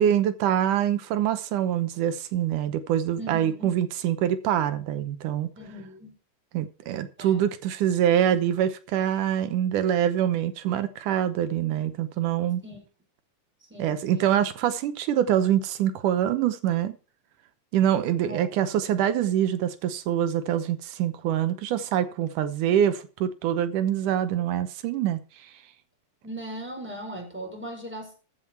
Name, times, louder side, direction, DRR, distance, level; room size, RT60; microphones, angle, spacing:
voice 1, 0.0-5.5 6.5-12.6 13.8-16.9 17.7-25.2, right 10 dB, 70° right, 2.1 m, -25 dB
voice 2, 3.2-3.7 5.6-6.1 7.2-7.4 12.6-12.8 13.6-14.3 18.3-18.4 26.2-28.1, right 1 dB, 5° right, 4.4 m, -38 dB
14.0 x 7.5 x 4.4 m
omnidirectional pair, 4.3 m